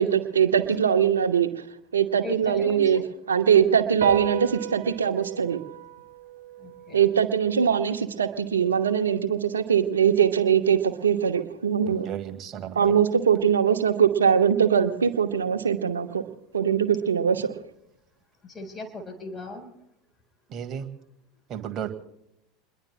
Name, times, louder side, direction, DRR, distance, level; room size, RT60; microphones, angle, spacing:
voice 1, 0.0-1.5 1.9-3.0 3.3-5.6 6.9-12.1 12.7-16.2 16.5-17.5, right 8 dB, 80° right, 7 dB, 1.1 m, -22 dB
voice 2, 2.2-3.1 6.6-7.1 18.4-19.7, left 1 dB, 25° left, 5 dB, 4.3 m, -38 dB
sound 1, 4.0-10.7, right 13 dB, 65° right, 1.1 m, -38 dB
voice 3, 11.8-13.0 20.5-20.9 21.5-21.9, right 9 dB, 40° right, 6 dB, 1.8 m, -34 dB
29.0 x 21.5 x 2.2 m, 0.82 s
figure-of-eight pair, 80°, 0 cm